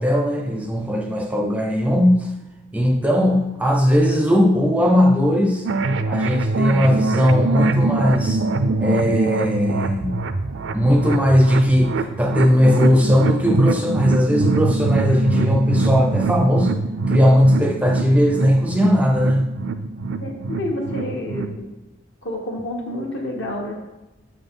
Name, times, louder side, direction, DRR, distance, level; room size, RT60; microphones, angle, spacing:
voice 1, 0.0-2.3 2.7-5.7 6.1-8.4 8.8-10.2 10.7-16.7 17.1-19.5, equal, 5° right, 1 dB, 0.5 m, -18 dB
sound 1, 5.6-21.6, right 3 dB, 65° right, 0.4 m, -23 dB
voice 2, 20.2-21.7 22.2-23.8, left 1 dB, 65° left, 0 dB, 1.4 m, -29 dB
7.3 x 4.0 x 5.3 m, 1.1 s
head